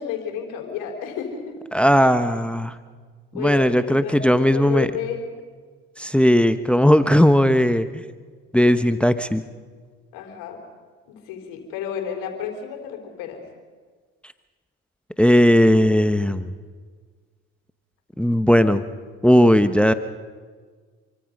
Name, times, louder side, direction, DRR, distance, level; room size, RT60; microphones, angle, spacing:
voice 1, 0.0-1.6 3.3-5.3 10.1-10.6 11.1-13.4, left 8 dB, 75° left, 3 dB, 4.1 m, -31 dB
voice 2, 1.7-2.7 3.3-4.9 6.0-7.9 8.5-9.4 15.2-16.5 18.2-18.8 19.2-19.9, equal, 5° left, 11 dB, 1.1 m, -17 dB
27.5 x 24.5 x 5.4 m, 1.5 s
hypercardioid pair, 60°, 33 cm